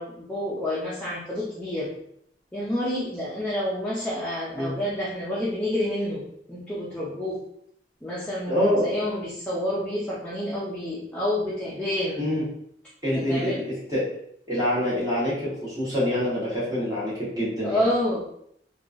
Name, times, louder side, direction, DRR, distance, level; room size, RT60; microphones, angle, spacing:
voice 1, 0.0-1.9 2.5-7.4 8.0-12.3 13.1-13.6 17.6-18.2, left 1 dB, 5° left, -7 dB, 0.4 m, -29 dB
voice 2, 8.5-8.9 12.2-12.4 13.0-14.0 14.5-17.8, left 1 dB, 20° right, -10 dB, 0.9 m, -26 dB
2.8 x 2.3 x 2.4 m, 0.71 s
head